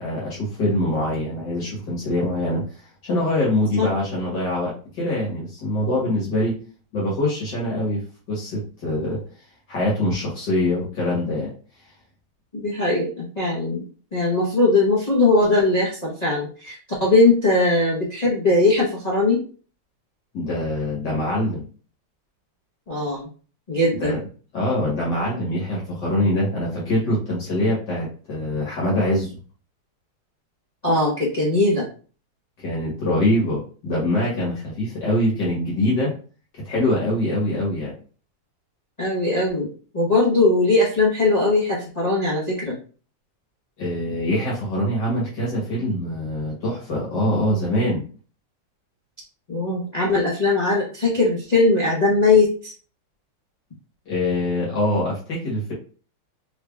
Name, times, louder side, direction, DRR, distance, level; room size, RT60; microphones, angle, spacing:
voice 1, 0.0-6.5 6.9-8.0 8.3-9.2 9.7-11.5 20.3-21.6 23.9-24.2 24.5-29.4 32.6-36.1 36.5-37.9 43.8-48.0 54.1-55.7, left 1 dB, 60° left, -5 dB, 1.7 m, -24 dB
voice 2, 12.5-13.8 14.1-19.4 22.9-23.3 23.7-24.1 30.8-31.9 39.0-42.8 49.5-52.7, left 2 dB, 80° left, -6 dB, 0.3 m, -20 dB
3.8 x 3.3 x 2.3 m, 0.38 s
omnidirectional pair, 2.4 m